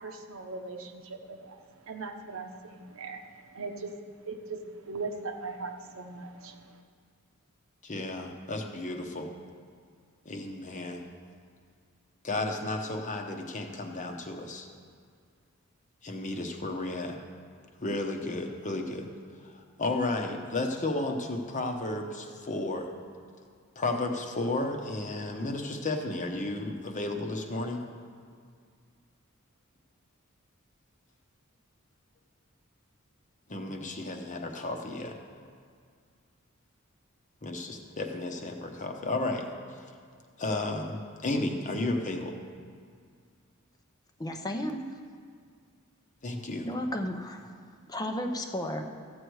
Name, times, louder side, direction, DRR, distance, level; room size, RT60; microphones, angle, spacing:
voice 1, 0.0-1.6 1.9-3.2 3.5-3.9 4.2-6.8, right 3 dB, 70° right, 4 dB, 0.9 m, -39 dB
voice 2, 7.8-9.3 10.2-11.1 12.2-14.7 16.0-17.2 17.8-19.1 19.4-22.9 23.8-27.8 33.5-35.2 37.4-39.8 40.4-42.4 46.2-46.7, left 2 dB, 35° left, 3 dB, 1.0 m, -33 dB
voice 3, 44.2-44.8 46.6-47.5 47.9-48.8, left 1 dB, 20° left, 5 dB, 0.7 m, -33 dB
14.0 x 7.9 x 4.7 m, 2.1 s
head